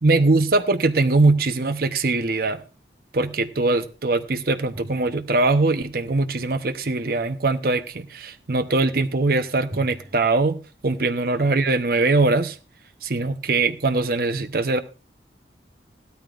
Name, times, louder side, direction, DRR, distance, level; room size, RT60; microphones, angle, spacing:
voice 1, 0.0-2.6 3.1-12.6 13.0-14.8, right 3 dB, 55° right, 0.8 m, -21 dB
sound 1, 9.7-10.3, equal, 35° right, 3.1 m, -42 dB
16.0 x 13.0 x 2.5 m
head